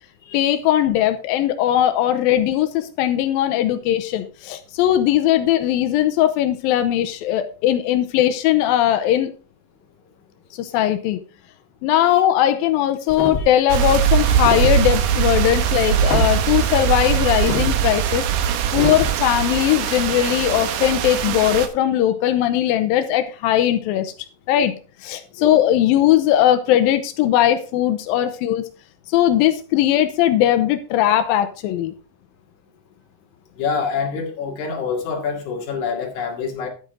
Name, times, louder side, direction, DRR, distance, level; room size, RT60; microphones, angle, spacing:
voice 1, 0.3-9.3 10.5-11.2 11.8-24.1 24.5-24.7 25.0-28.7 29.1-31.9, left 12 dB, 85° left, 8 dB, 2.1 m, -19 dB
sound 1, 13.1-13.6 14.4-14.8 16.1-16.3 17.5-17.8 18.8-19.2, left 2 dB, 35° left, 2.7 m, -25 dB
sound 2, 13.7-21.7, right 9 dB, 85° right, 1.8 m, -21 dB
voice 2, 33.5-36.7, left 5 dB, 50° left, 1 dB, 3.2 m, -26 dB
11.5 x 9.2 x 3.8 m, 0.36 s
omnidirectional pair, 5.2 m